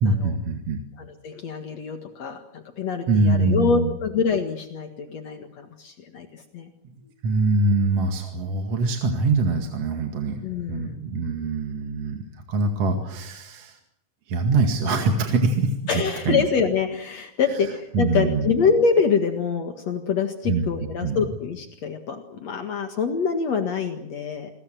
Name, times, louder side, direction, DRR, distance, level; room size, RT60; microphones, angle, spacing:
voice 1, 0.0-0.8 3.1-3.9 7.2-12.2 12.5-13.8 14.3-16.4 17.9-18.5 20.4-20.7 21.0-21.3, right 3 dB, 60° right, 4 dB, 3.1 m, -23 dB
voice 2, 1.0-6.7 10.4-11.0 15.9-24.5, left 5 dB, 65° left, 6 dB, 2.9 m, -25 dB
28.0 x 21.0 x 7.6 m, 0.74 s
omnidirectional pair, 3.4 m